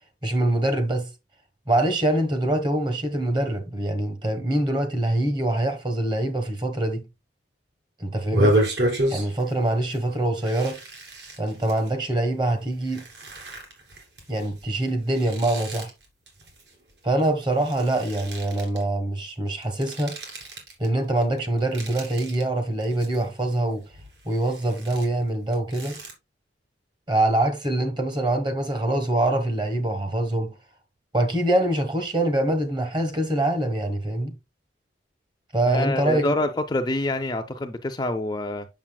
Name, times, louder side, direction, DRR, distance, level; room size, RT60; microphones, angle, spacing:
voice 1, 0.2-1.1 1.7-7.0 8.0-8.6 9.1-10.8 11.4-13.0 14.3-15.9 17.0-20.2 20.8-23.8 24.2-26.0 27.1-30.5 31.1-34.3 35.5-36.4, right 1 dB, 25° right, 1.1 m, -24 dB
sound 1, 8.2-9.5 9.9-10.0 10.4-11.9 12.5-17.3 17.5-18.8 19.6-20.9 21.2-22.4 22.8-23.6 23.9-26.1, right 1 dB, 65° right, 2.8 m, -30 dB
voice 2, 35.7-38.7, left 1 dB, 20° left, 0.5 m, -26 dB
7.3 x 6.6 x 2.3 m
head